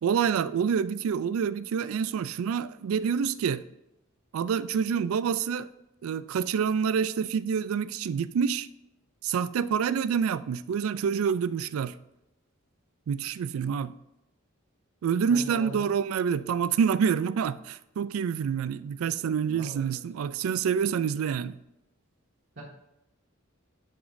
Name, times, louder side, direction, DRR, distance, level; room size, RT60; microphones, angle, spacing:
voice 1, 0.0-3.6 4.3-5.7 6.0-8.7 9.2-11.9 13.1-13.9 15.0-21.6, right 7 dB, 85° right, 0.3 m, -27 dB
voice 2, 15.3-15.9 19.5-19.9, right 2 dB, 55° right, 1.7 m, -40 dB
10.5 x 5.0 x 2.6 m
head